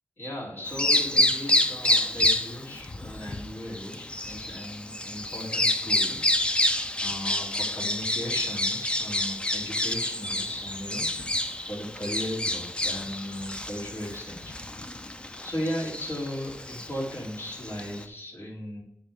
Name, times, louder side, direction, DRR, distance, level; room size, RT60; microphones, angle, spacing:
voice 1, 0.2-6.2 7.0-11.1 11.7-14.5 15.4-18.8, equal, 55° left, -3 dB, 3.4 m, -36 dB
Bird vocalization bird call bird song, 0.7-18.0, left 1 dB, 20° left, 0.6 m, -28 dB
11.5 x 4.3 x 3.7 m, 0.76 s
wide cardioid pair, 110°, 5 cm